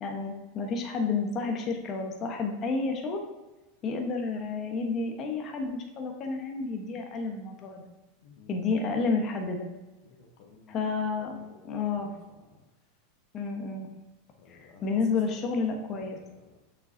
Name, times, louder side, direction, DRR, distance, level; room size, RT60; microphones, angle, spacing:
voice 1, 0.0-3.2 3.8-7.8 8.5-9.7 10.7-11.4 11.6-12.1 13.3-13.9 14.5-16.2, left 4 dB, 40° left, 3 dB, 1.2 m, -30 dB
voice 2, 8.2-8.6 10.0-12.1 12.5-12.6 14.4-14.9 15.3-15.4 15.8-16.6, left 5 dB, 60° left, 1 dB, 1.1 m, -55 dB
6.9 x 6.6 x 2.8 m, 1.1 s
hypercardioid pair, 95°, 0 cm